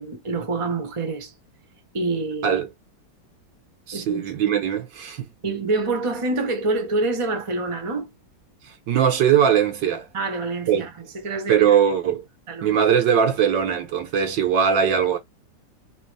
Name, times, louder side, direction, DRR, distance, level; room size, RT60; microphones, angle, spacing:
voice 1, 0.0-1.3 1.9-2.6 3.9-4.2 5.4-8.1 10.1-10.9 11.2-11.7 12.5-12.8, right 3 dB, 20° right, 0.9 m, -26 dB
voice 2, 3.9-5.3 8.6-10.1 10.7-10.9 11.5-12.2 12.6-15.2, right 8 dB, 80° right, 1.8 m, -20 dB
4.1 x 3.2 x 3.3 m
omnidirectional pair, 1.9 m